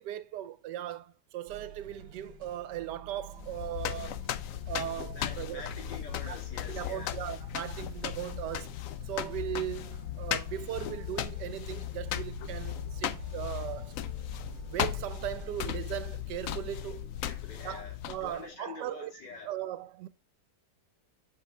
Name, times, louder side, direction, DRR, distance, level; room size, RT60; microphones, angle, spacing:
voice 1, 0.0-4.2 4.7-5.6 6.3-6.4 6.7-8.7 9.0-14.0 14.7-17.1 17.6-19.1 19.4-20.1, right 12 dB, 85° right, 1.3 m, -38 dB
sound 1, 1.5-16.2, right 6 dB, 60° right, 1.6 m, -50 dB
sound 2, 3.4-18.5, left 11 dB, 70° left, 0.8 m, -37 dB
voice 2, 5.1-7.2 17.2-18.0 18.2-19.5, left 4 dB, 85° left, 2.7 m, -45 dB
7.5 x 4.8 x 3.3 m
omnidirectional pair, 1.8 m